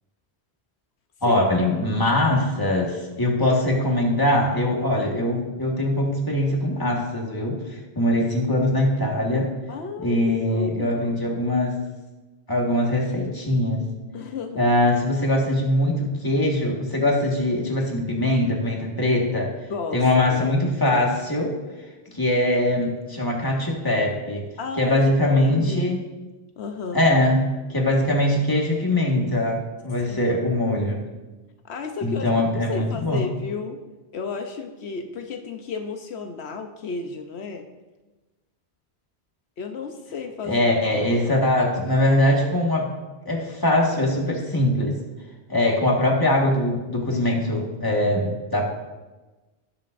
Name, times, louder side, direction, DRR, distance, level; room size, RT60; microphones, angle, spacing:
voice 1, 1.2-9.5 10.0-11.7 12.5-13.8 14.6-19.6 19.9-21.5 22.1-24.5 24.8-26.0 26.9-27.4 27.7-31.0 32.0-33.2 40.4-42.9 43.2-45.0 45.5-48.6, left 1 dB, 20° left, -1 dB, 1.7 m, -22 dB
voice 2, 9.7-11.2 14.1-14.6 19.7-20.5 24.6-25.0 25.3-26.0 26.6-27.1 30.1-30.5 31.6-33.8 34.1-37.7 39.6-41.4, left 4 dB, 80° left, 5 dB, 1.1 m, -33 dB
18.5 x 7.1 x 2.6 m, 1.2 s
omnidirectional pair, 1.1 m